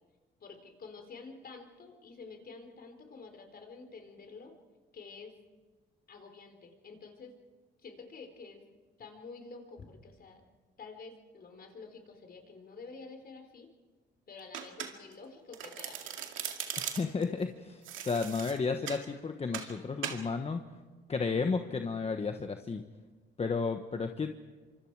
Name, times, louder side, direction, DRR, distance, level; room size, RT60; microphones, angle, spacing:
voice 1, 0.4-4.5 4.9-5.3 6.1-7.3 7.8-8.6 9.0-10.4 10.8-13.7 14.3-16.2, left 4 dB, 50° left, 5 dB, 4.1 m, -49 dB
Domestic sounds home sounds, 14.5-15.2 15.5-17.2 17.8-19.1 19.5-19.7 20.0-20.2, right 9 dB, 85° right, 2.2 m, -39 dB
voice 2, 16.8-20.6 21.1-22.8 23.4-24.3, left 4 dB, 30° left, 6 dB, 1.2 m, -33 dB
26.0 x 25.5 x 4.8 m, 1.3 s
cardioid pair, 90°, 20 cm